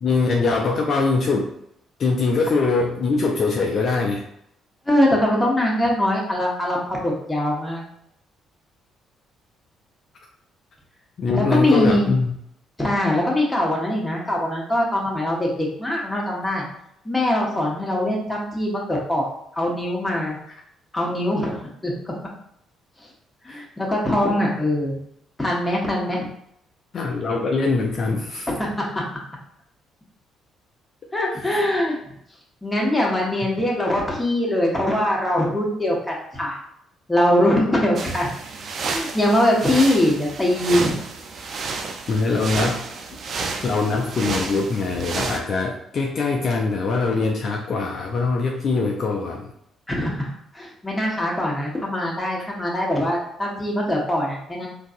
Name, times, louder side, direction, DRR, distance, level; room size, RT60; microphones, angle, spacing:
voice 1, 0.0-1.5 2.0-4.3 11.2-12.4 23.4-23.6 26.9-28.5 31.3-31.6 42.1-42.9 43.6-49.5, left 3 dB, 50° left, 1 dB, 0.4 m, -22 dB
voice 2, 4.9-7.8 11.3-12.1 12.8-16.6 17.0-19.3 19.5-20.4 20.9-22.1 23.4-25.0 25.4-26.3 28.5-28.7 31.1-32.0 32.6-36.6 37.1-38.3 38.8-41.0 49.9-50.2 50.5-54.7, left 1 dB, 15° left, -3 dB, 1.3 m, -22 dB
sound 1, 38.0-45.4, right 4 dB, 55° right, 0.4 m, -31 dB
3.7 x 2.8 x 2.5 m, 0.74 s
hypercardioid pair, 45°, 0 cm